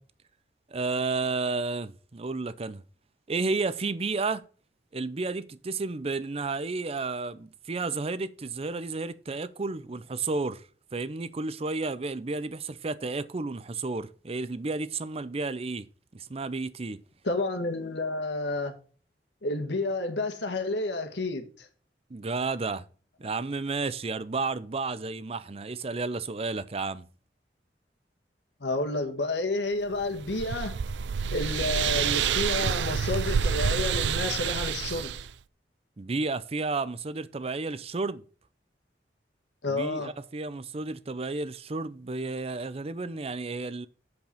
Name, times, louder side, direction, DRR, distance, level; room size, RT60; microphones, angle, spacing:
voice 1, 0.7-2.8 3.3-4.4 4.9-10.6 10.9-15.9 16.1-17.0 22.1-22.8 23.2-27.0 36.0-38.2 39.7-43.9, right 3 dB, 35° right, 0.6 m, -32 dB
voice 2, 17.2-18.7 19.4-21.7 28.6-30.8 31.3-35.1 39.6-40.1, left 2 dB, 85° left, 1.7 m, -30 dB
sound 1, 29.9-35.3, right 7 dB, 85° right, 0.5 m, -28 dB
8.0 x 5.2 x 6.7 m
head